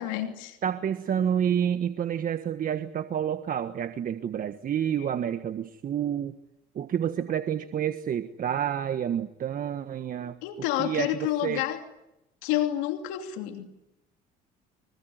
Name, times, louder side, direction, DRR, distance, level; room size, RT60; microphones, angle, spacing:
voice 1, 0.0-0.6 10.4-11.8 12.4-13.8, left 13 dB, 85° left, 6 dB, 2.8 m, -29 dB
voice 2, 0.6-6.4 6.7-10.4 10.8-11.7, right 9 dB, 45° right, 9 dB, 1.5 m, -29 dB
26.0 x 23.5 x 9.6 m, 0.89 s
supercardioid pair, 85°, 19 cm